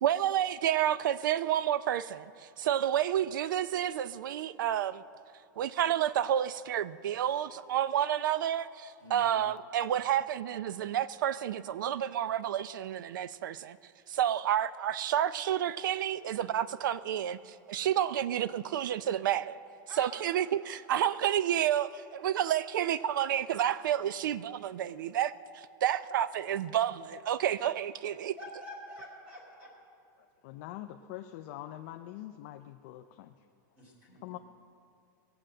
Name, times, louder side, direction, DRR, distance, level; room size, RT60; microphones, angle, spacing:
voice 1, 0.0-5.0 5.6-13.8 14.1-19.6 20.0-28.4, right 10 dB, 80° right, 17 dB, 0.5 m, -30 dB
voice 2, 9.0-9.4 19.9-20.1 28.3-29.7 33.8-34.2, left 1 dB, 15° right, -3 dB, 3.3 m, -47 dB
voice 3, 30.4-33.3 34.2-34.4, left 13 dB, 35° left, 7 dB, 0.4 m, -44 dB
20.0 x 7.8 x 7.6 m, 2.6 s
supercardioid pair, 180°, 10 cm